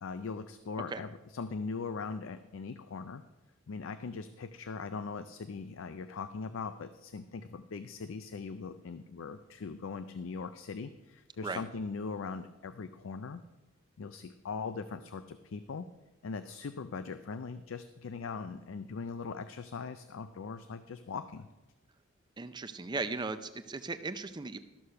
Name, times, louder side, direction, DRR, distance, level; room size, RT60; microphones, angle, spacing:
voice 1, 0.0-3.2 3.7-13.4 14.0-15.9 16.2-21.5, left 4 dB, 75° left, 11 dB, 0.4 m, -40 dB
voice 2, 22.4-24.6, right 3 dB, 20° right, 11 dB, 0.4 m, -37 dB
13.0 x 6.5 x 5.6 m, 1.1 s
head